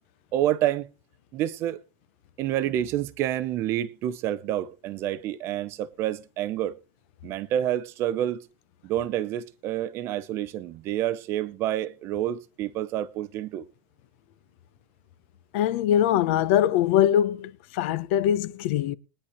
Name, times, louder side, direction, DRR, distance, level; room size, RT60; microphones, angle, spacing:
voice 1, 0.3-0.9 1.3-1.8 2.4-6.8 7.2-8.4 8.8-13.7, right 12 dB, 30° right, 0.7 m, -28 dB
voice 2, 15.5-19.0, left 11 dB, 50° left, 0.8 m, -22 dB
21.0 x 10.0 x 3.1 m
supercardioid pair, 175°, 8 cm